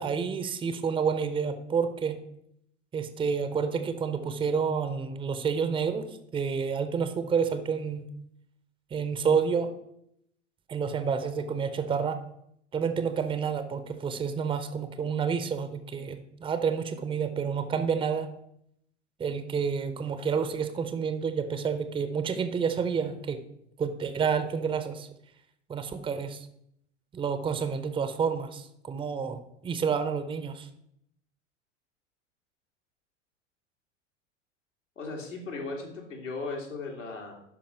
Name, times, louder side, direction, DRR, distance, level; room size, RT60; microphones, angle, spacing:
voice 1, 0.0-2.2 2.9-6.1 6.3-8.1 8.9-9.7 10.7-12.2 12.7-18.3 19.2-23.4 23.8-25.1 25.7-26.5 27.1-30.7, right 6 dB, 15° right, 10 dB, 0.7 m, -29 dB
voice 2, 35.0-37.3, left 3 dB, 80° left, -2 dB, 2.5 m, -37 dB
12.0 x 5.3 x 4.4 m, 0.74 s
figure-of-eight pair, 80°, 37 cm